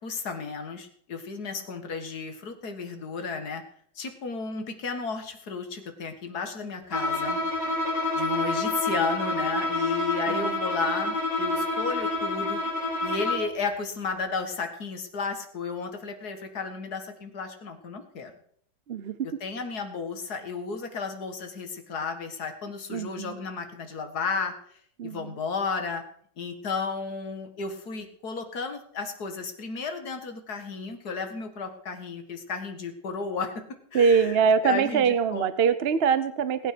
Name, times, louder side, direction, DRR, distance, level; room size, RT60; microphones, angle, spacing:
voice 1, 0.0-3.6 4.0-7.4 8.1-12.6 13.0-18.3 19.4-26.0 26.4-34.4 34.6-35.5, left 4 dB, 50° left, 6 dB, 2.3 m, -33 dB
Bowed string instrument, 6.9-13.6, left 2 dB, 30° left, 5.7 m, -28 dB
voice 2, 18.9-19.4 22.9-23.4 25.0-25.4 33.9-36.7, right 6 dB, 55° right, 13 dB, 0.7 m, -24 dB
19.5 x 9.2 x 6.0 m, 0.63 s
omnidirectional pair, 2.1 m